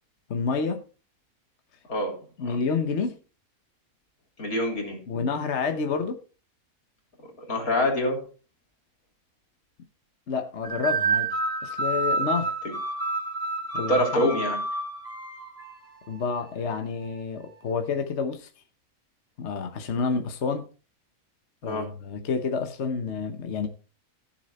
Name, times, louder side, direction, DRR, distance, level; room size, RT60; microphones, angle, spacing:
voice 1, 0.3-0.8 2.4-3.2 5.1-6.2 10.3-11.3 11.6-12.5 13.7-14.2 16.1-18.5 19.4-20.7 21.6-23.7, left 5 dB, 55° left, 1.3 m, -29 dB
voice 2, 1.9-2.6 4.4-5.0 7.5-8.3 12.6-12.7 13.8-14.6 21.6-21.9, left 1 dB, 90° left, 3.9 m, -26 dB
sound 1, 10.6-15.7, right 3 dB, 60° right, 2.8 m, -28 dB
14.0 x 7.0 x 4.3 m
omnidirectional pair, 1.5 m